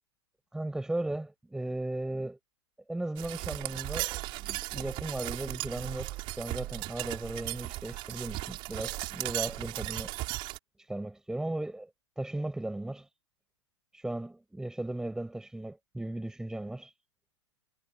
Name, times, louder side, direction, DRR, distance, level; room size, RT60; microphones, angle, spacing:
voice 1, 0.5-2.4 2.9-10.1 10.9-11.9 12.2-13.1 13.9-16.9, right 1 dB, 5° right, 6.7 m, -36 dB
sound 1, 3.2-10.6, right 20 dB, 35° right, 4.5 m, -36 dB
figure-of-eight pair, 105°, 15 cm